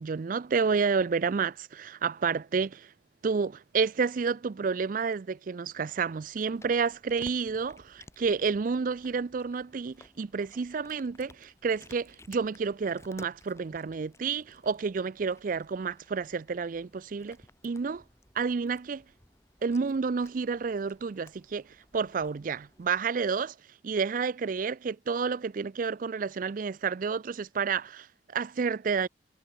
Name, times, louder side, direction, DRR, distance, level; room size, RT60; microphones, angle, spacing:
voice 1, 0.0-2.9 3.2-17.4 17.6-18.0 18.4-19.0 19.6-21.6 21.9-23.5 23.8-29.1, right 5 dB, 45° right, 0.4 m, -30 dB
Cat, 5.9-23.1, left 1 dB, 15° left, 3.1 m, -57 dB
head